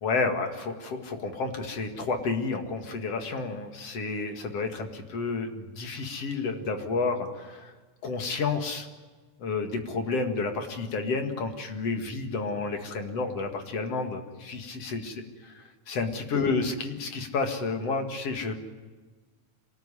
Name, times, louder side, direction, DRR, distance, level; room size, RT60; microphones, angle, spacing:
voice 1, 0.0-7.7 8.0-8.9 9.4-15.2 15.9-18.5, left 4 dB, 55° left, 6 dB, 2.9 m, -30 dB
26.5 x 19.0 x 9.9 m, 1.3 s
omnidirectional pair, 3.5 m